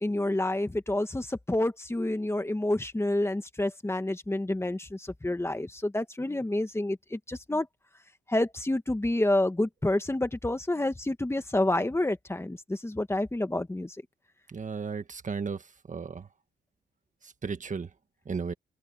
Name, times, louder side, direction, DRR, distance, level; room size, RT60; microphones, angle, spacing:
voice 1, 0.0-7.7 8.3-13.9, left 1 dB, 10° left, 1.6 m, -28 dB
voice 2, 14.5-15.6 15.9-16.3 17.4-17.9 18.2-18.5, right 5 dB, 35° right, 1.6 m, -34 dB
wide cardioid pair, 130°, 21 cm